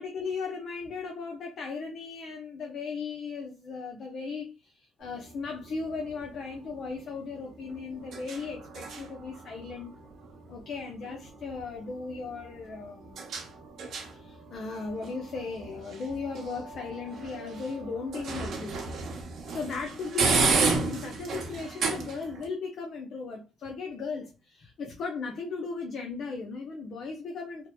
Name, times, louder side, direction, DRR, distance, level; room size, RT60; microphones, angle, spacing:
voice 1, 0.0-9.9 10.5-13.2 14.1-18.8 19.5-27.7, left 4 dB, 55° left, 0.5 m, -37 dB
sound 1, 5.0-22.5, right 4 dB, 60° right, 0.8 m, -34 dB
2.8 x 2.1 x 2.2 m
cardioid pair, 90°, 0 cm